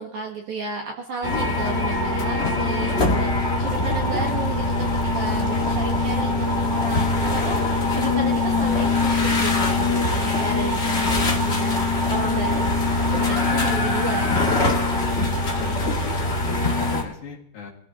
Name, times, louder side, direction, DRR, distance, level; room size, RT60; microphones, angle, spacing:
voice 1, 0.0-7.7 7.9-12.7 13.1-16.0, right 4 dB, 60° right, 0 dB, 2.3 m, -33 dB
sound 1, 1.2-17.0, left 3 dB, 85° left, 0.5 m, -22 dB
voice 2, 15.6-17.7, left 4 dB, 60° left, -2 dB, 3.6 m, -37 dB
24.5 x 14.0 x 3.0 m, 0.77 s
omnidirectional pair, 4.9 m